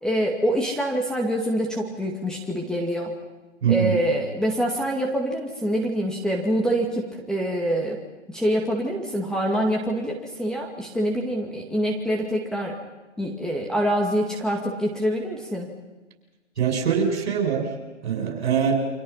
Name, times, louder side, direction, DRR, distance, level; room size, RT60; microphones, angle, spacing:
voice 1, 0.0-3.1 3.7-8.0 8.3-12.8 13.2-15.7, equal, ahead, 0 dB, 2.2 m, -25 dB
voice 2, 3.6-4.0 16.6-17.7 18.0-18.7, right 7 dB, 60° right, 3 dB, 7.5 m, -23 dB
29.5 x 26.0 x 5.8 m, 1.2 s
hypercardioid pair, 145°, 36 cm